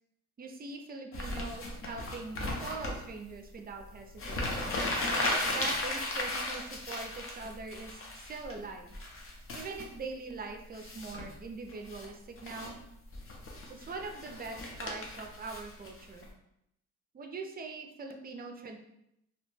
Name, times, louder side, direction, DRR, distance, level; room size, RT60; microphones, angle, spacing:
voice 1, 0.4-4.8 5.4-8.9 9.5-12.8 13.7-16.3 17.1-18.8, right 3 dB, 30° right, 4 dB, 0.4 m, -42 dB
sound 1, 1.1-3.0 3.9-4.0 4.1-8.5 8.9-9.8 10.7-11.3 11.7-12.1 12.4-12.7 13.1-16.2, left 2 dB, 45° left, 0.7 m, -35 dB
2.7 x 2.1 x 3.1 m, 0.79 s
cardioid pair, 90°, 30 cm